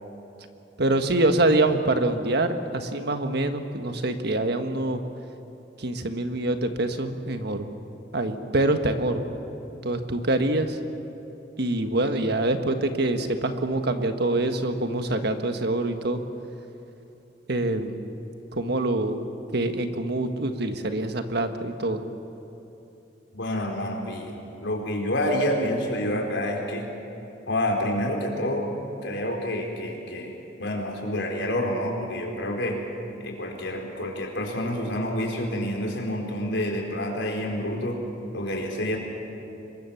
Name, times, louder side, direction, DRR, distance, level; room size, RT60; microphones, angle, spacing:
voice 1, 0.8-5.0 5.8-7.7 8.1-9.2 9.8-10.8 11.6-16.2 17.5-18.1 18.5-19.2 19.5-22.0, right 2 dB, 60° right, 7 dB, 1.5 m, -25 dB
voice 2, 23.3-24.3 24.6-26.9 27.5-28.7 29.0-32.8 33.2-38.0 38.3-39.0, left 1 dB, 75° left, 1 dB, 4.4 m, -28 dB
25.5 x 22.5 x 7.2 m, 2.9 s
head